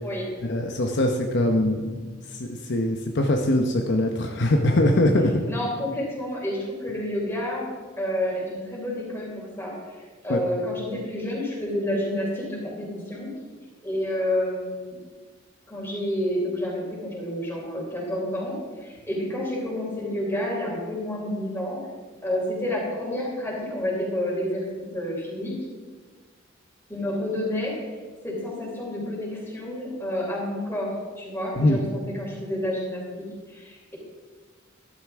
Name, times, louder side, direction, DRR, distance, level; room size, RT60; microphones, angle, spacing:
voice 1, 0.4-1.9 2.3-5.4 10.3-10.4 31.6-31.8, left 1 dB, 60° left, 3 dB, 0.9 m, -22 dB
voice 2, 5.4-7.7 8.0-13.3 13.8-15.0 15.7-21.8 22.2-25.6 26.9-28.0 28.2-34.0, left 1 dB, 10° left, -4 dB, 3.8 m, -29 dB
13.0 x 12.0 x 3.6 m, 1.4 s
head